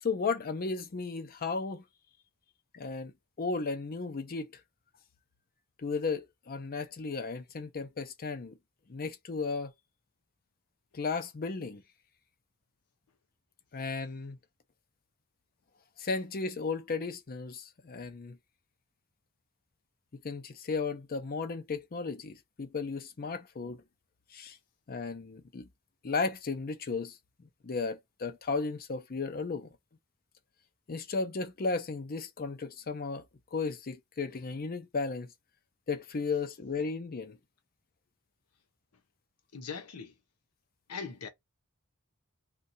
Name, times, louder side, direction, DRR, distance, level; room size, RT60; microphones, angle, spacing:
voice 1, 0.0-1.8 2.7-3.1 3.4-4.5 5.8-8.5 8.9-9.7 10.9-11.8 13.7-14.4 16.0-18.4 20.2-23.8 24.3-24.6 24.9-25.7 26.0-27.2 27.6-29.7 30.9-33.2 33.5-35.3 35.9-37.4, left 4 dB, 40° left, 0.6 m, -34 dB
voice 2, 39.5-40.1 40.9-41.3, left 5 dB, 80° left, 0.8 m, -40 dB
2.7 x 2.3 x 4.0 m
head